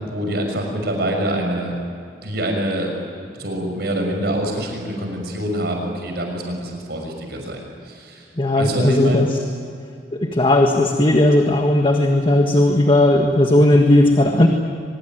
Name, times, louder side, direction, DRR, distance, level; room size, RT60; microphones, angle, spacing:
voice 1, 0.0-1.8 2.1-2.9 3.3-8.2 8.6-9.2, right 1 dB, 65° right, 2 dB, 6.4 m, -25 dB
voice 2, 8.4-9.4 10.1-14.5, left 1 dB, 30° left, 3 dB, 1.7 m, -16 dB
24.5 x 22.5 x 9.3 m, 2.5 s
head